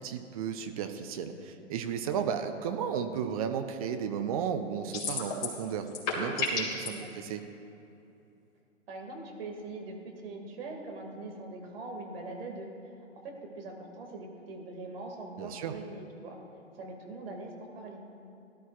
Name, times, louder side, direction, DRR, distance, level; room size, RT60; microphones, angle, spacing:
voice 1, 0.0-5.9 6.2-7.4 15.4-15.7, right 7 dB, 30° right, 7 dB, 0.6 m, -34 dB
sound 1, 4.9-5.6 5.9-6.9, left 5 dB, 35° left, 2.9 m, -31 dB
voice 2, 8.9-12.7 13.2-16.4 16.8-18.0, right 2 dB, 50° right, 1 dB, 2.3 m, -42 dB
17.5 x 12.0 x 2.5 m, 2.7 s
figure-of-eight pair, 120°, 37 cm